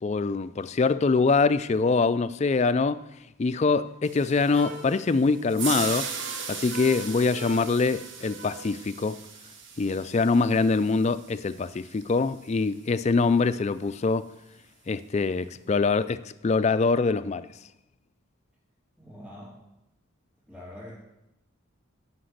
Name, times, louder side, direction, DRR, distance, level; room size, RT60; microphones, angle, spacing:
voice 1, 0.0-3.0 3.4-6.1 6.5-9.2 9.8-14.3 14.9-17.5, left 4 dB, 30° left, 0.3 m, -24 dB
sound 1, 4.0-12.3, right 6 dB, 60° right, 1.1 m, -38 dB
sound 2, 4.5-8.7, right 1 dB, 80° right, 5.1 m, -42 dB
voice 2, 19.0-19.6 20.5-21.0, left 1 dB, 5° right, 3.4 m, -44 dB
10.0 x 5.9 x 7.9 m
head